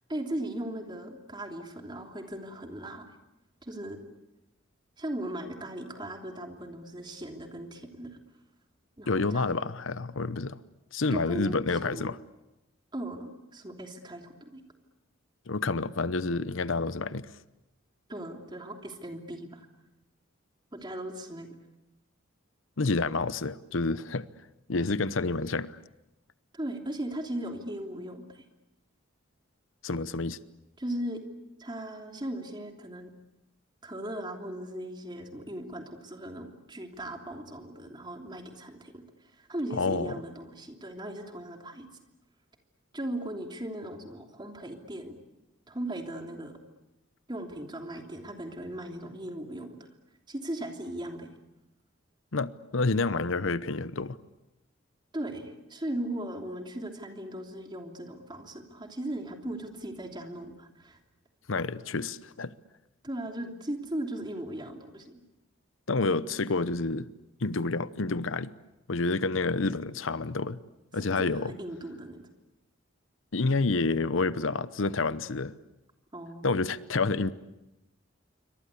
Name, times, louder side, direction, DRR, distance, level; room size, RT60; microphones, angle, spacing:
voice 1, 0.1-3.1 3.6-4.0 5.0-8.2 9.0-9.5 11.1-12.1 12.9-14.6 18.1-19.7 20.7-21.5 26.5-28.4 30.8-31.2 31.6-33.1 33.8-39.0 39.3-41.9 42.9-45.2 45.7-46.6 47.3-49.7 50.3-51.3 55.1-61.0 63.0-65.2 71.0-72.3 76.1-76.6, right 1 dB, 20° right, 3.1 m, -38 dB
voice 2, 9.1-10.6 10.9-12.2 15.5-17.3 22.8-24.3 24.7-25.8 29.8-30.4 39.7-40.1 52.3-54.2 61.5-62.5 65.9-67.1 67.4-68.5 68.9-70.6 70.9-71.5 73.3-75.5 76.4-77.3, left 3 dB, 75° left, 0.9 m, -29 dB
27.5 x 24.5 x 8.4 m
head